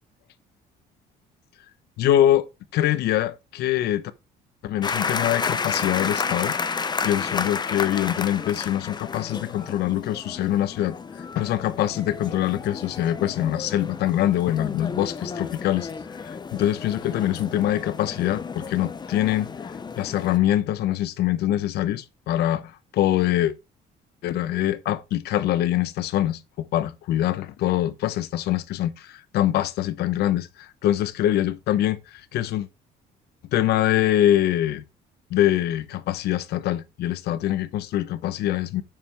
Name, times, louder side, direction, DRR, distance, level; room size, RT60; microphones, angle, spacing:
voice 1, 2.0-2.5 2.7-4.1 4.6-6.5 7.0-15.9 16.2-19.5 20.0-23.6 24.2-32.7 33.5-34.8 35.3-38.8, left 12 dB, 75° left, 0.9 m, -24 dB
sound 1, 4.8-20.4, left 5 dB, 25° left, 0.7 m, -32 dB
8.9 x 6.8 x 3.4 m
cardioid pair, 110°, 17 cm